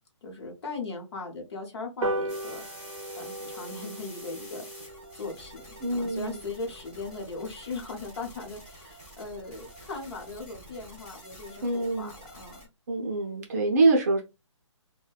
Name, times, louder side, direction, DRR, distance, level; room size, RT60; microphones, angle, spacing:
voice 1, 0.2-2.6 3.2-4.7 5.2-12.6, left 3 dB, 55° left, 0.9 m, -39 dB
sound 1, 2.0-8.8 9.2-9.3 9.6-9.7 10.0-10.1 10.4-10.5 10.8-11.0 11.5-11.6, right 1 dB, 90° right, 0.5 m, -38 dB
sound 2, 2.3-12.7, equal, 10° left, 0.6 m, -48 dB
voice 2, 5.8-6.4 11.6-12.1 12.9-14.2, right 3 dB, 30° right, 0.6 m, -25 dB
2.6 x 2.1 x 2.3 m
hypercardioid pair, 170°, 16 cm